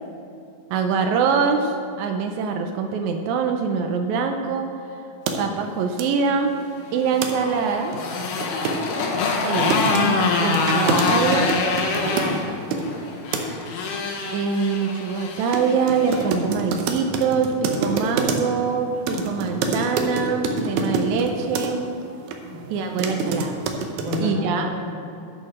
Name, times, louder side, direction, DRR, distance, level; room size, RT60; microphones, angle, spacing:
voice 1, 0.7-1.7 2.0-4.7 5.4-6.5 6.9-8.0 9.4-9.7 10.4-11.5 14.3-21.8 22.7-23.5 24.2-24.7, right 5 dB, 90° right, 5 dB, 1.6 m, -24 dB
sound 1, 5.3-5.4 6.0-6.1 7.2-7.3 7.6-7.7 7.9-12.9 13.3-13.6 15.5-15.6 15.9-18.6 19.1-21.7 22.3-22.4 22.8-24.3, right 4 dB, 70° right, 2.0 m, -26 dB
Motorcycle, 6.9-16.3, left 4 dB, 75° left, 2.4 m, -25 dB
voice 2, 12.0-12.4 22.4-22.6 23.9-24.8, left 1 dB, 40° right, -3 dB, 1.9 m, -31 dB
8.8 x 6.4 x 6.0 m, 2.7 s
omnidirectional pair, 3.9 m